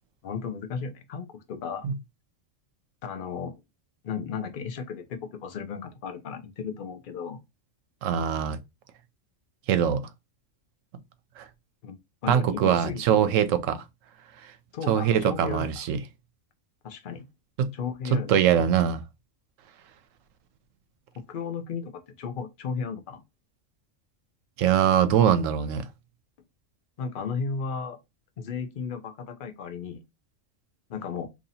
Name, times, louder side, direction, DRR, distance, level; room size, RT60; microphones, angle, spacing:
voice 1, 0.2-1.9 3.0-3.6 4.0-7.4 11.8-13.3 14.7-15.9 16.8-17.3 17.7-18.4 21.3-21.9 22.2-23.2 27.0-28.0 28.4-30.0 30.9-31.3, left 6 dB, 50° left, 0.7 m, -34 dB
voice 2, 8.0-8.6 9.7-10.0 11.4-11.5 12.3-13.8 14.9-16.0 17.6-17.7 18.1-19.0 24.6-25.8, right 9 dB, 80° right, 0.9 m, -22 dB
2.9 x 2.7 x 4.0 m
omnidirectional pair, 1.3 m